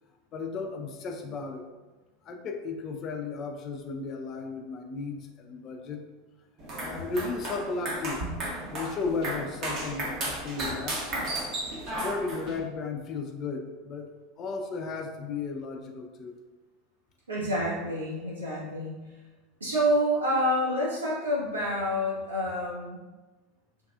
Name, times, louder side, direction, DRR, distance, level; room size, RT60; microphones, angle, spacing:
voice 1, 0.3-1.7 2.2-6.0 6.8-8.2 8.7-11.2 11.9-14.1 14.4-16.4, left 4 dB, 35° left, 4 dB, 0.4 m, -35 dB
sound 1, 6.6-12.6, right 1 dB, 45° right, 0.8 m, -34 dB
voice 2, 17.3-19.0 19.6-23.0, equal, 80° right, -7 dB, 1.0 m, -28 dB
3.4 x 2.4 x 2.3 m, 1.2 s
figure-of-eight pair, 80°, 0 cm